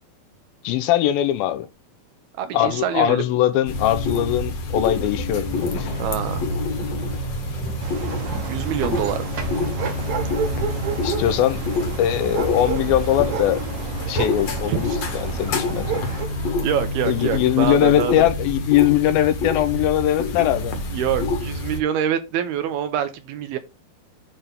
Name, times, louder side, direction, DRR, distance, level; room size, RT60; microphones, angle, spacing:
voice 1, 0.6-1.7 2.5-5.9 10.9-11.6 12.0-13.6 14.1-15.9 17.1-20.7, left 12 dB, 80° left, 2.4 m, -21 dB
voice 2, 2.4-3.3 6.0-6.5 8.5-9.3 14.7-15.0 16.6-18.3 20.9-23.6, right 9 dB, 85° right, 3.1 m, -25 dB
sound 1, 3.7-21.8, left 2 dB, 55° left, 2.1 m, -27 dB
sound 2, 5.4-17.6, right 5 dB, 45° right, 1.6 m, -37 dB
sound 3, 7.8-16.3, right 6 dB, 65° right, 2.1 m, -31 dB
8.9 x 3.5 x 5.8 m
omnidirectional pair, 4.3 m